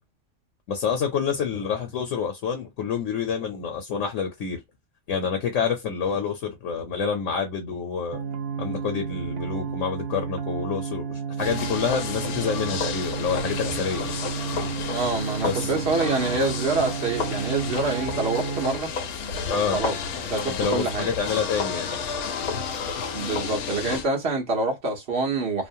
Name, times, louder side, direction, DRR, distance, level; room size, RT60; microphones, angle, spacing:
voice 1, 0.7-4.6 5.1-8.2 8.6-14.1 15.4-15.7 19.5-19.8 20.5-22.0, left 6 dB, 65° left, 1.0 m, -28 dB
sound 1, 8.1-18.8, right 6 dB, 70° right, 0.6 m, -32 dB
sound 2, 11.4-24.1, left 6 dB, 85° left, 1.1 m, -31 dB
voice 2, 14.9-18.9 19.7-19.9 20.3-21.1 23.1-25.7, right 3 dB, 50° right, 1.2 m, -26 dB
3.1 x 2.0 x 2.7 m
omnidirectional pair, 1.5 m